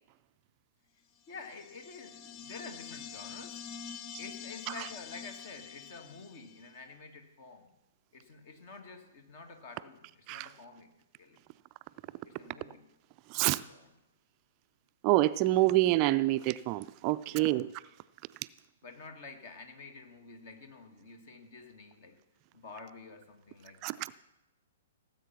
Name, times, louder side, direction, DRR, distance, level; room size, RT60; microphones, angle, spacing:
voice 1, 1.3-3.6 4.2-7.7 8.1-10.9 11.1-11.4 12.2-12.8 13.7-13.8 17.3-17.6 18.8-22.2 22.5-24.0, left 4 dB, 50° left, 2.0 m, -49 dB
sound 1, 1.3-6.7, left 7 dB, 30° left, 0.6 m, -46 dB
voice 2, 13.3-13.7 15.0-17.7 18.4-18.5 23.8-24.1, right 17 dB, 35° right, 0.3 m, -27 dB
17.0 x 7.9 x 5.8 m
figure-of-eight pair, 115°, 0 cm